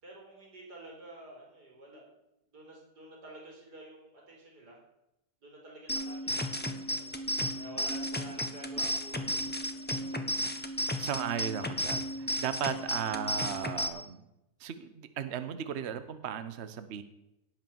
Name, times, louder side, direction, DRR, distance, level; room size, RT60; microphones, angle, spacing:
voice 1, 0.0-2.1 2.5-4.8 5.4-10.2, right 1 dB, 85° right, -1 dB, 4.6 m, -50 dB
sound 1, 5.9-13.9, equal, 10° left, 0.9 m, -34 dB
voice 2, 11.0-14.2 14.6-17.0, right 8 dB, 50° right, 11 dB, 0.9 m, -36 dB
18.0 x 6.1 x 7.0 m, 0.91 s
omnidirectional pair, 1.7 m